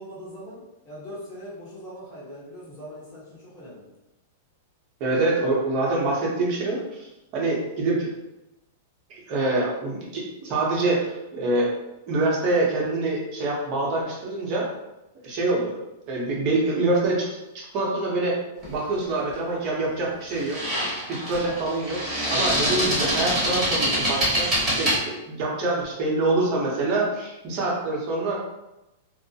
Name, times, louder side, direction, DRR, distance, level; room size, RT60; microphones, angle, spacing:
voice 1, 0.0-3.9, equal, 25° left, -9 dB, 1.1 m, -41 dB
voice 2, 5.0-8.1 9.1-11.7 12.1-14.7 15.2-15.8 16.1-17.3 17.7-18.4 18.6-22.0 22.3-28.4, right 2 dB, 35° right, -3 dB, 0.7 m, -25 dB
sound 1, 18.6-18.9 20.3-25.0, equal, 10° right, 1.0 m, -25 dB
2.3 x 2.0 x 2.7 m, 0.93 s
supercardioid pair, 165°, 0 cm